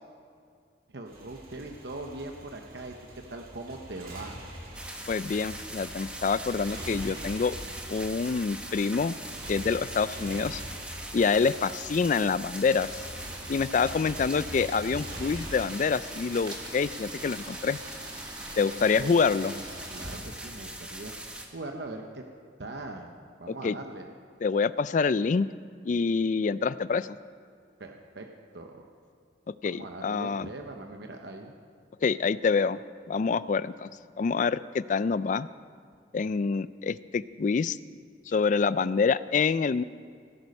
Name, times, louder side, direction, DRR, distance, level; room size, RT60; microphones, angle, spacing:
voice 1, 0.9-4.4 18.6-19.2 19.4-21.1 21.5-22.3 22.6-24.1 27.8-28.3 28.5-28.9 29.6-31.6 38.3-38.4, right 2 dB, 65° right, 3 dB, 0.9 m, -41 dB
Motorcycle, 1.1-15.6, right 1 dB, 50° right, 3.1 m, -44 dB
sound 1, 4.7-21.5, right 1 dB, 5° right, 1.2 m, -41 dB
voice 2, 5.1-7.5 7.9-9.2 9.5-10.6 11.1-12.9 13.5-17.8 18.6-19.5 23.6-23.8 24.4-25.5 25.8-27.1 29.6-30.5 32.0-32.8 33.1-33.9 34.2-35.5 36.1-37.8 38.3-39.8, left 5 dB, 45° left, 16 dB, 0.3 m, -26 dB
sound 2, 12.9-20.2, right 1 dB, 20° right, 1.5 m, -45 dB
17.5 x 11.0 x 5.4 m, 2.2 s
head